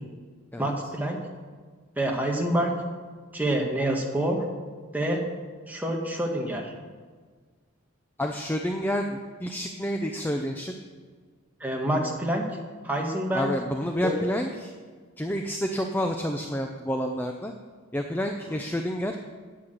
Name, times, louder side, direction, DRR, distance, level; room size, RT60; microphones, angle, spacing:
voice 1, 0.6-1.2 2.0-2.7 3.3-4.4 4.9-5.2 5.7-6.7 11.6-12.5 12.8-13.5 14.0-14.2, right 1 dB, 10° right, 0 dB, 1.5 m, -27 dB
voice 2, 8.2-10.7 13.3-14.7 15.2-17.5 17.9-19.2, equal, 10° left, 4 dB, 0.5 m, -29 dB
9.6 x 8.5 x 7.8 m, 1.6 s
head